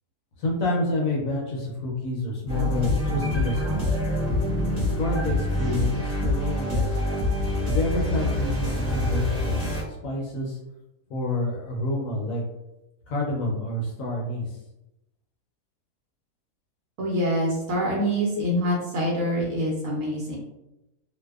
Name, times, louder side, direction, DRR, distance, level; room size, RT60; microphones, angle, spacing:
voice 1, 0.4-4.0 4.8-7.0 7.6-10.6 11.1-12.4 13.1-14.6, left 2 dB, 70° left, -2 dB, 0.9 m, -28 dB
sound 1, 2.5-9.8, left 1 dB, 20° right, 1.2 m, -26 dB
voice 2, 17.0-20.4, equal, 65° right, -3 dB, 0.9 m, -25 dB
2.6 x 2.1 x 2.3 m, 0.91 s
omnidirectional pair, 1.7 m